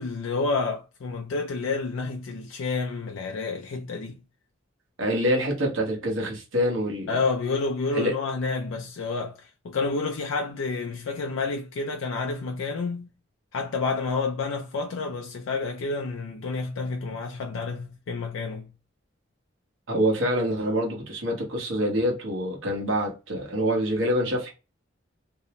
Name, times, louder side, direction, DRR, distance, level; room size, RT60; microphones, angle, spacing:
voice 1, 0.0-4.2 7.1-13.1 13.5-18.7, left 4 dB, 90° left, 0.4 m, -29 dB
voice 2, 5.0-7.2 7.9-8.1 19.9-24.5, equal, 85° right, 0.9 m, -26 dB
2.6 x 2.0 x 2.8 m
head